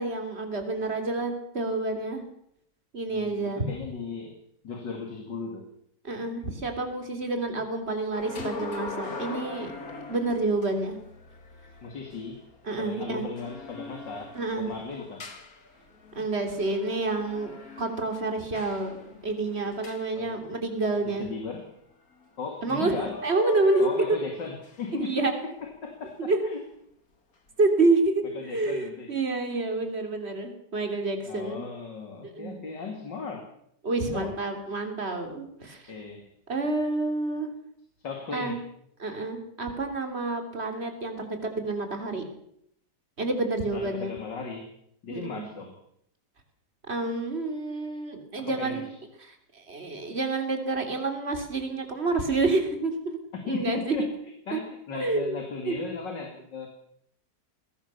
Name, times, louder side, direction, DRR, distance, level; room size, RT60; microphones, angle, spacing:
voice 1, 0.0-2.2 2.9-3.6 6.0-9.7 10.1-11.0 12.6-13.3 14.4-14.7 16.2-17.5 17.8-21.3 22.6-24.2 25.0-25.3 26.2-26.4 27.6-31.7 32.2-32.6 33.8-35.9 36.5-37.5 38.3-38.6 39.0-42.3 43.2-44.1 45.1-45.5 46.9-48.8 49.2-53.2 53.5-54.0 54.5-54.6 54.9-55.4 55.7-55.9, right 3 dB, 35° right, 5 dB, 3.5 m, -28 dB
voice 2, 3.1-4.4 4.6-5.7 11.8-12.4 12.8-15.3 20.1-20.4 21.0-21.7 22.4-23.2 23.8-26.6 28.3-29.1 31.3-33.5 34.0-34.4 35.9-36.2 38.0-38.6 43.7-44.7 45.0-45.7 48.4-48.9 53.5-54.1 54.5-56.7, left 5 dB, 90° left, 3 dB, 3.2 m, -36 dB
sound 1, 8.1-20.9 22.6-22.8 23.1-24.9 25.6-25.8, left 4 dB, 55° left, 2.9 m, -42 dB
21.5 x 18.0 x 6.9 m, 0.72 s
omnidirectional pair, 1.9 m